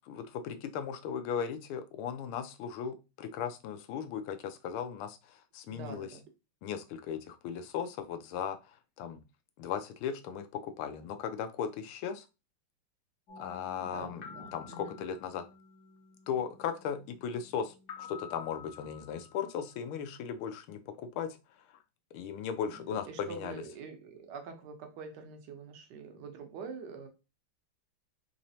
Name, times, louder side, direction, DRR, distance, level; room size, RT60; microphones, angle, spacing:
voice 1, 0.1-6.1 6.6-8.6 9.0-9.2 9.6-12.2 13.4-15.4 16.3-17.7 18.0-21.4 22.1-23.6, left 7 dB, 85° left, 1.4 m, -37 dB
voice 2, 5.7-6.2 13.8-15.0 22.7-27.1, right 5 dB, 65° right, 1.2 m, -45 dB
sound 1, 13.3-19.8, left 6 dB, 60° left, 1.5 m, -51 dB
4.0 x 3.0 x 2.7 m
omnidirectional pair, 2.3 m